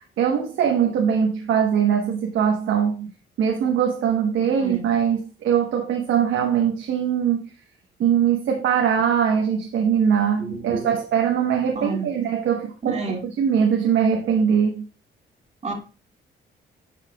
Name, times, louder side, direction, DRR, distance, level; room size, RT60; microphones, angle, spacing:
voice 1, 0.0-3.1 3.4-7.4 8.0-14.8, right 8 dB, 75° right, 1.1 m, -21 dB
voice 2, 10.4-10.9 11.8-12.1 12.8-13.2 15.6-15.7, right 4 dB, 35° right, 2.1 m, -29 dB
9.4 x 5.7 x 2.3 m
cardioid pair, 90°, 20 cm